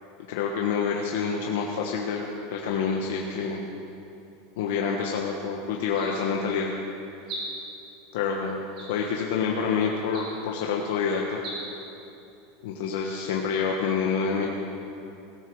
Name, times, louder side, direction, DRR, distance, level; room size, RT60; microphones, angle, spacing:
voice 1, 0.3-3.6 4.6-6.7 8.1-8.6 8.9-11.4 12.6-14.5, left 6 dB, 65° left, -1 dB, 1.2 m, -27 dB
sound 1, 4.9-5.2 5.9-6.5 7.2-7.8 8.7-9.3 10.0-10.6 11.3-11.6, right 2 dB, 35° right, 3.9 m, -39 dB
17.0 x 13.0 x 4.8 m, 2.8 s
supercardioid pair, 180°, 0 cm